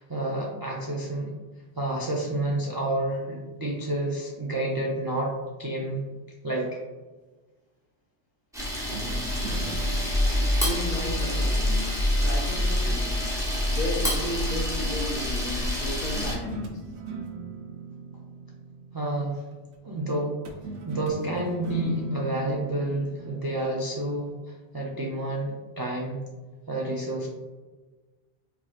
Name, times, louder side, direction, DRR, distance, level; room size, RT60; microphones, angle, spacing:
voice 1, 0.0-1.3 1.8-5.3 5.6-6.0 6.4-6.7 18.9-19.4 19.8-20.4 20.9-24.3 24.7-26.2 26.7-27.3, right 1 dB, 40° right, -3 dB, 0.3 m, -29 dB
Camera, 8.5-16.3, left 1 dB, 5° right, 0.8 m, -26 dB
sound 1, 8.9-12.3 16.1-19.5 20.4-24.3, right 4 dB, 65° right, 0.7 m, -40 dB
voice 2, 10.5-17.0, left 1 dB, 50° left, -1 dB, 0.6 m, -34 dB
4.6 x 2.9 x 2.4 m, 1.2 s
omnidirectional pair, 1.1 m